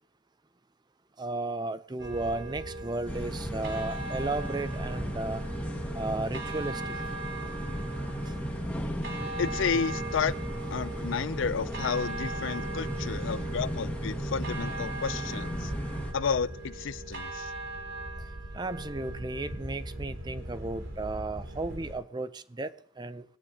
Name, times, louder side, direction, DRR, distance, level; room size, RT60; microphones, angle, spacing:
voice 1, 1.2-5.4 6.0-6.9 18.5-23.2, right 2 dB, 20° right, 0.5 m, -34 dB
sound 1, 2.0-22.0, right 2 dB, 75° right, 4.2 m, -39 dB
sound 2, 3.1-16.1, equal, 10° left, 1.4 m, -35 dB
voice 2, 9.4-10.4 10.7-15.7 16.1-17.5, left 6 dB, 70° left, 0.4 m, -31 dB
19.5 x 9.7 x 2.8 m
head